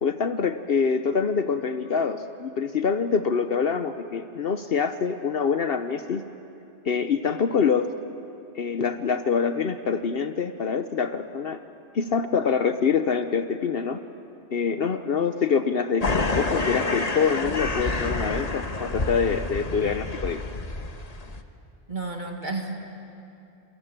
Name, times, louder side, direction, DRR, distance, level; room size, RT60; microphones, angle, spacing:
voice 1, 0.0-6.2 6.8-7.9 8.5-11.6 11.9-14.0 14.5-20.4, left 6 dB, 60° left, 9 dB, 1.0 m, -25 dB
sound 1, 16.0-21.4, left 3 dB, 35° left, 1.3 m, -28 dB
voice 2, 19.0-19.4 21.9-22.7, right 3 dB, 45° right, 2 dB, 2.1 m, -33 dB
28.0 x 22.5 x 8.8 m, 2.7 s
omnidirectional pair, 1.1 m